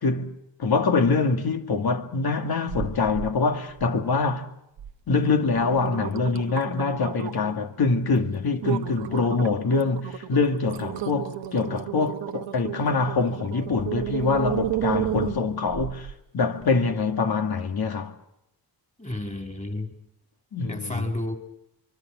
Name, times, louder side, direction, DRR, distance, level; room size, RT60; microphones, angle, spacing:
voice 1, 0.0-4.5 5.1-16.1 16.3-18.1 20.5-21.1, left 4 dB, 55° left, 2.2 m, -24 dB
sound 1, 2.7-3.3 3.7-4.2 4.8-4.9 5.3-7.6 8.0-8.2 8.6-16.1 16.6-16.7, right 12 dB, 85° right, 1.2 m, -32 dB
voice 2, 19.0-19.9 20.7-21.4, left 1 dB, 15° left, 3.8 m, -31 dB
24.5 x 24.5 x 6.2 m
cardioid pair, 80°, 43 cm